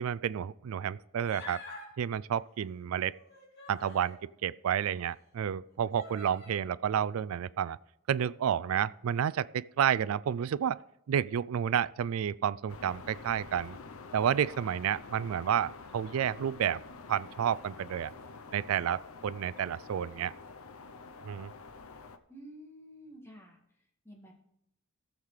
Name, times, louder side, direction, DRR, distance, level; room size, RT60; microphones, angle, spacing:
voice 1, 0.0-1.6 2.0-3.2 3.7-7.8 8.1-10.8 11.1-13.8 14.1-16.8 17.1-18.1 18.5-20.3 21.2-21.5, right 9 dB, 80° right, 0.3 m, -30 dB
Human voice, 1.2-1.9 3.1-4.2 5.0-5.1 5.9-6.6, left 3 dB, 50° left, 3.2 m, -47 dB
sound 1, 12.7-22.2, left 4 dB, 90° left, 0.7 m, -48 dB
voice 2, 22.3-23.6 24.0-24.3, equal, 10° left, 2.1 m, -50 dB
18.0 x 7.3 x 3.3 m
head